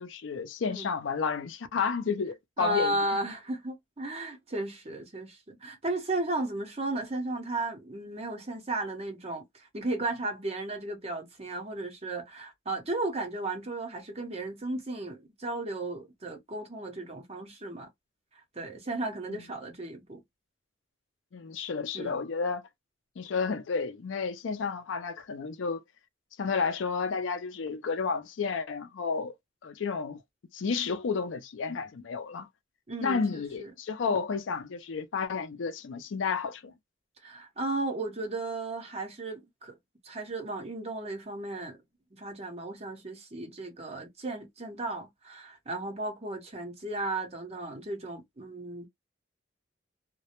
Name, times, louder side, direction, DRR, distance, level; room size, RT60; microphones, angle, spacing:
voice 1, 0.0-2.9 21.3-22.6 23.2-25.8 26.4-29.3 29.6-30.2 30.5-32.5 33.0-36.7, left 5 dB, 75° left, 0.5 m, -31 dB
voice 2, 2.6-17.9 18.3-20.2 21.9-22.2 32.9-33.7 34.1-34.2 37.2-39.7 40.0-41.8 42.1-48.9, right 2 dB, 35° right, 0.8 m, -35 dB
2.2 x 2.0 x 2.9 m
head